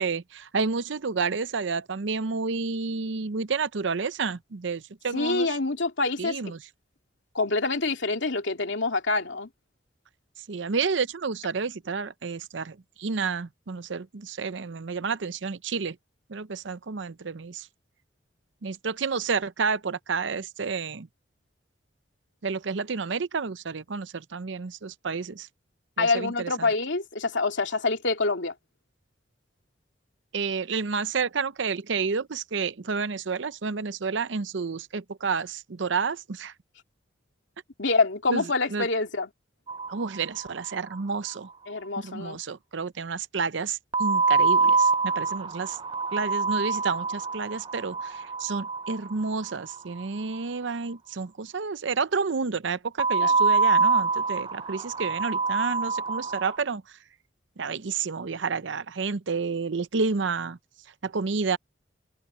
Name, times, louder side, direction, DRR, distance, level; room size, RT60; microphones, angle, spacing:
voice 1, 0.0-5.5 6.2-6.6 10.5-16.0 16.3-17.7 18.6-21.1 22.4-25.5 26.0-26.7 30.3-36.5 38.3-38.4 38.7-38.9 39.9-41.5 42.0-45.8 46.1-56.8 57.6-60.6 61.0-61.6, right 5 dB, 75° right, 0.7 m, -30 dB
voice 2, 5.1-6.4 7.3-9.5 26.0-28.5 37.8-39.3 41.7-42.4 53.2-53.3, left 3 dB, 75° left, 2.6 m, -26 dB
sound 1, 39.7-40.7 40.9-41.0 41.3-41.4 43.9-50.0 53.0-56.6, right 4 dB, 25° right, 0.4 m, -25 dB
head